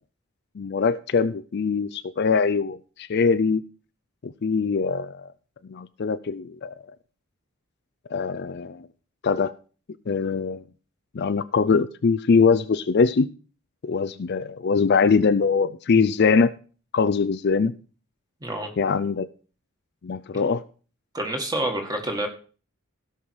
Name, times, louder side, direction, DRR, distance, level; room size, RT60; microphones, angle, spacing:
voice 1, 0.6-3.6 4.2-5.2 5.7-6.7 8.1-8.9 9.2-9.5 10.1-10.6 11.1-13.3 13.8-16.5 16.9-17.7 18.8-19.3 20.0-20.6, left 5 dB, 45° left, 13 dB, 0.4 m, -22 dB
voice 2, 18.4-18.7 21.1-22.3, right 1 dB, 15° right, 3 dB, 1.8 m, -28 dB
16.5 x 5.7 x 4.7 m, 0.38 s
head